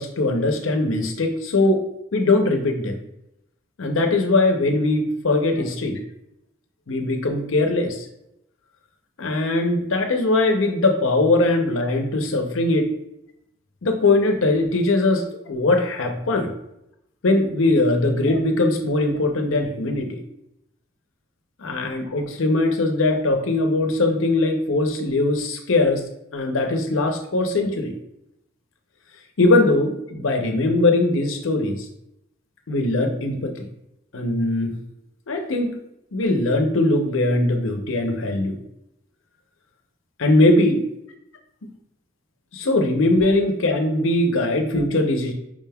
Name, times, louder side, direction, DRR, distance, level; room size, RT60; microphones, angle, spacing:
voice 1, 0.0-1.8 2.1-3.0 3.8-6.0 6.9-8.1 9.2-12.9 13.8-16.5 17.2-20.2 21.6-26.0 26.3-27.9 29.4-31.9 32.7-33.7 34.1-34.8 35.3-35.8 36.1-38.6 40.2-40.8 42.5-45.3, left 2 dB, 75° left, 4 dB, 0.6 m, -21 dB
5.0 x 3.4 x 2.2 m, 0.82 s
head